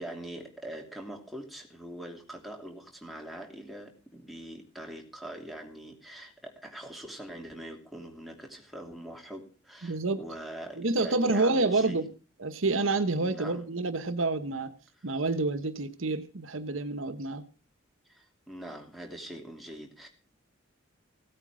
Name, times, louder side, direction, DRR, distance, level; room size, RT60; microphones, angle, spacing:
voice 1, 0.0-12.0 13.2-13.6 18.0-20.1, right 1 dB, ahead, 3.0 m, -43 dB
voice 2, 9.8-10.2 10.8-12.1 12.4-14.7 15.0-17.5, right 3 dB, 75° right, 1.1 m, -28 dB
16.5 x 9.0 x 6.2 m
head